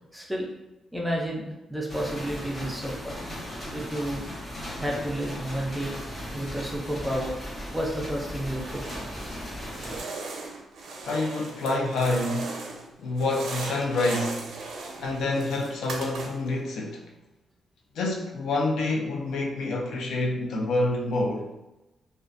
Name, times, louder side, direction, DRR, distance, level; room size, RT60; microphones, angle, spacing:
voice 1, 0.1-0.5 0.9-3.3 3.7-4.3 4.8-6.0 6.3-7.3 7.7-8.8, equal, 5° right, -2 dB, 0.4 m, -31 dB
sound 1, 1.9-10.0, equal, 30° left, 1.0 m, -37 dB
sound 2, 8.6-9.4 9.7-12.9 13.1-16.6, right 3 dB, 85° right, 0.5 m, -38 dB
voice 2, 11.0-12.7 13.0-14.5 15.0-17.1 17.9-21.5, left 2 dB, 75° left, 0 dB, 0.4 m, -27 dB
2.5 x 2.1 x 2.4 m, 1.0 s
wide cardioid pair, 170°, 0 cm